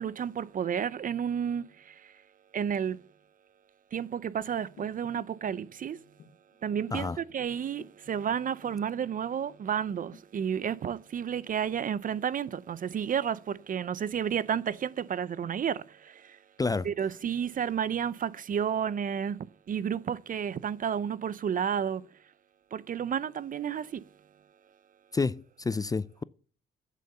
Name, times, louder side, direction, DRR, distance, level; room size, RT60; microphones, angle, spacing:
voice 1, 0.0-2.1 2.5-3.0 3.9-6.0 6.6-16.4 16.8-22.1 22.7-24.0, right 8 dB, 45° right, 0.5 m, -31 dB
sound 1, 4.4-9.1 9.4-10.2, left 5 dB, 70° left, 1.8 m, -55 dB
voice 2, 25.1-26.2, left 4 dB, 20° left, 0.4 m, -29 dB
8.3 x 7.7 x 6.6 m
cardioid pair, 90°, 20 cm